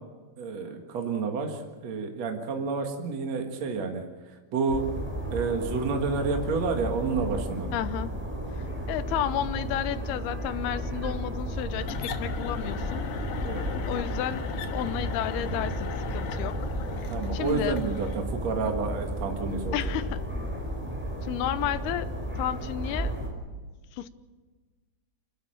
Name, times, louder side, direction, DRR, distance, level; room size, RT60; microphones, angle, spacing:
voice 1, 0.4-4.0 4.5-4.8 5.3-7.7 13.4-13.7 16.9-19.9, right 4 dB, 50° right, 3 dB, 2.5 m, -30 dB
sound 1, 4.7-23.3, right 1 dB, 5° right, 4.2 m, -33 dB
voice 2, 7.7-8.1 8.9-13.1 13.9-16.6 17.3-17.8 19.7-20.2 21.2-22.1 22.4-23.1 23.9-24.1, left 12 dB, 90° left, 13 dB, 2.9 m, -32 dB
sound 2, 11.8-18.2, left 7 dB, 65° left, 2.4 m, -37 dB
28.5 x 12.5 x 8.8 m, 1.4 s
omnidirectional pair, 4.5 m